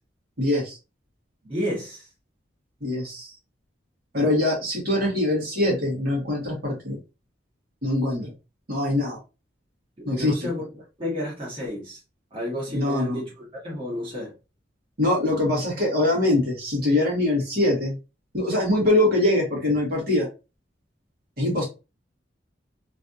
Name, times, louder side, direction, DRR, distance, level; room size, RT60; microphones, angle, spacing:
voice 1, 0.4-0.8 2.8-3.3 4.1-7.0 7.8-8.3 8.7-9.2 10.1-10.3 12.7-13.2 15.0-18.0 18.3-20.3 21.4-21.7, left 1 dB, 55° right, 1.6 m, -23 dB
voice 2, 1.4-2.0 10.0-12.0 12.3-14.3, equal, 30° right, 1.4 m, -31 dB
3.2 x 2.7 x 2.5 m
head